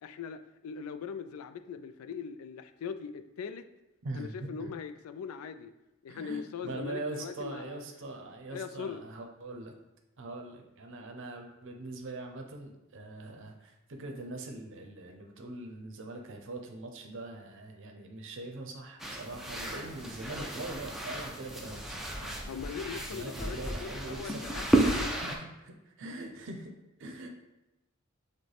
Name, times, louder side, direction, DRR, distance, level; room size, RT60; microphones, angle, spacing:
voice 1, 0.0-3.6 4.1-5.7 6.0-7.8 8.5-9.1 22.5-25.2, left 6 dB, 80° left, 10 dB, 0.3 m, -40 dB
voice 2, 4.0-4.5 6.1-9.7 10.2-22.4 22.9-24.4 25.1-26.7 27.0-27.3, right 2 dB, 60° right, 3 dB, 0.6 m, -42 dB
sound 1, 19.0-25.4, right 1 dB, ahead, 0.4 m, -32 dB
6.2 x 2.2 x 3.3 m, 0.95 s
head